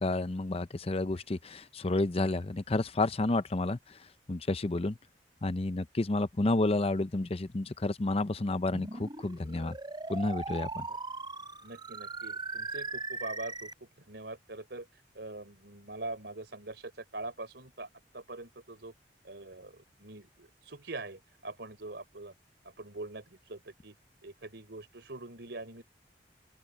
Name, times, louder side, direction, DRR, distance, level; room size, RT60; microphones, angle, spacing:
voice 1, 0.0-4.0 4.3-5.0 5.4-9.8 10.1-10.9, left 2 dB, 35° left, 0.6 m, -30 dB
sound 1, 8.7-13.7, right 3 dB, 25° right, 4.8 m, -39 dB
voice 2, 11.6-13.7 14.0-14.9 15.1-17.9 18.1-18.9 19.2-22.3 22.8-23.9 24.2-25.8, right 2 dB, 70° right, 4.5 m, -43 dB
open air
head